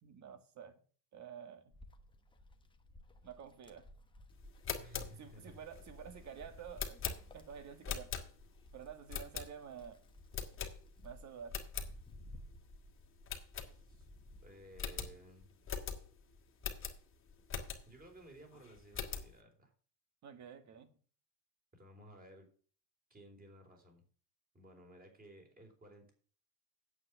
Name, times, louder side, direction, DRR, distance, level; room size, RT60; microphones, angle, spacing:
voice 1, 0.0-0.7 1.1-1.7 3.2-3.9 5.2-7.0 7.3-8.1 8.7-10.0 11.0-11.6 20.2-20.9, right 7 dB, 35° right, 10 dB, 2.0 m, -50 dB
Wind, 1.7-15.8 16.3-17.8, left 1 dB, 10° left, 1.1 m, -57 dB
sound 1, 4.5-8.6 9.1-9.8 10.3-11.1 11.4-11.9 12.4-12.5 12.7-12.8 13.3-14.2 14.4-14.5 14.8-18.1 18.5-19.3, left 6 dB, 25° left, 2.0 m, -42 dB
voice 2, 4.8-5.6 13.6-14.1 14.4-15.6 17.9-19.7 21.7-22.5 23.1-24.0 24.5-26.1, right 1 dB, 20° right, 3 dB, 4.4 m, -56 dB
9.4 x 8.2 x 6.0 m, 0.42 s
supercardioid pair, 135°, 48 cm